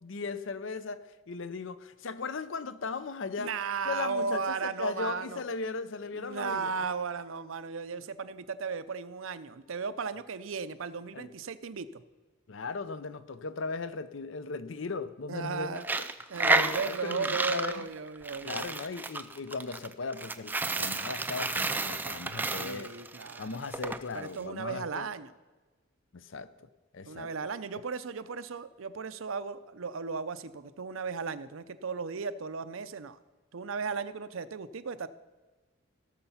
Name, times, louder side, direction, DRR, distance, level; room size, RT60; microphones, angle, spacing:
voice 1, 0.0-3.5 3.8-6.7 11.1-11.3 12.5-15.8 16.4-17.8 18.4-22.9 23.4-25.1 26.1-27.3, left 4 dB, 70° left, 14 dB, 0.6 m, -37 dB
voice 2, 3.4-5.4 6.1-12.0 15.3-15.9 16.3-18.8 22.6-23.6 24.1-25.3 27.1-33.2 33.5-35.1, right 5 dB, 85° right, 13 dB, 0.6 m, -36 dB
Coin (dropping), 15.8-24.0, right 3 dB, 10° right, 0.3 m, -31 dB
17.0 x 6.8 x 5.6 m, 1.2 s
head